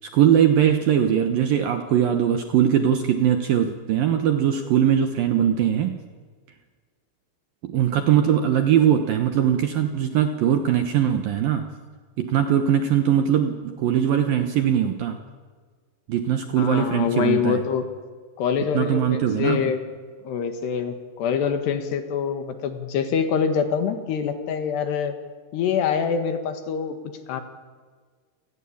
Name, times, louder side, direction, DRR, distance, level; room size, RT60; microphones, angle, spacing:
voice 1, 0.0-5.9 7.6-11.7 12.2-15.2 16.1-17.6 18.7-19.7, right 9 dB, 70° right, 7 dB, 2.3 m, -21 dB
voice 2, 16.6-17.8 18.4-19.8 20.2-25.2 25.5-27.0 27.3-27.4, left 7 dB, 65° left, 8 dB, 3.6 m, -25 dB
28.0 x 19.0 x 8.7 m, 1.5 s
omnidirectional pair, 5.4 m